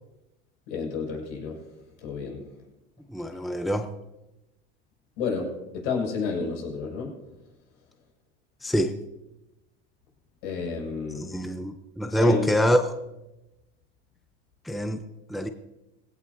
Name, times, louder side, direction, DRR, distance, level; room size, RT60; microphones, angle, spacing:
voice 1, 0.7-1.6 2.0-2.4 5.2-7.1 10.4-11.3 12.2-12.5, left 5 dB, 75° left, 0 dB, 6.7 m, -30 dB
voice 2, 3.1-3.9 8.6-9.0 11.1-12.8 14.7-15.0 15.3-15.5, equal, ahead, 8 dB, 0.8 m, -25 dB
19.0 x 16.5 x 2.8 m, 0.96 s
supercardioid pair, 100°, 34 cm